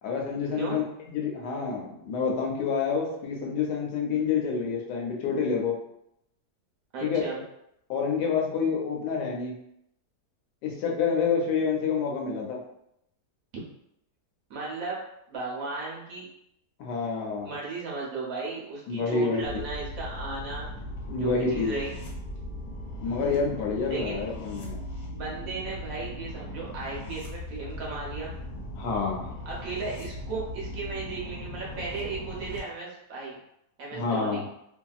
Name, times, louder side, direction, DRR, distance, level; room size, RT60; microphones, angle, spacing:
voice 1, 0.0-5.8 7.0-7.2 7.9-9.6 10.6-12.6 16.8-17.5 18.9-19.4 21.1-21.8 23.0-24.8 28.8-29.3 33.9-34.4, left 5 dB, 90° left, 0 dB, 1.2 m, -28 dB
voice 2, 6.9-7.4 14.5-15.0 15.3-16.3 17.4-20.7 21.1-22.0 23.9-24.2 25.1-28.3 29.4-33.4 33.8-34.4, right 4 dB, 65° right, -4 dB, 1.1 m, -35 dB
sound 1, 19.4-32.6, left 1 dB, 65° left, 1.2 m, -38 dB
2.8 x 2.6 x 2.3 m, 0.78 s
omnidirectional pair, 1.7 m